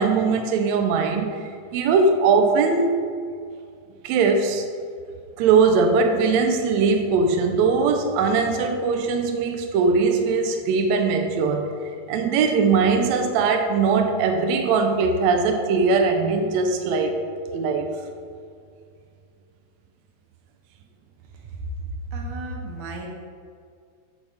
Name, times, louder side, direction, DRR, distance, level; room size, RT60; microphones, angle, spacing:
voice 1, 0.0-1.4 1.7-3.0 4.0-4.6 5.4-11.7 12.1-17.1 17.5-17.9, right 4 dB, 90° right, 5 dB, 1.5 m, -20 dB
voice 2, 22.1-23.1, right 2 dB, 70° right, 0 dB, 2.1 m, -33 dB
6.4 x 6.2 x 3.5 m, 2.2 s
omnidirectional pair, 3.8 m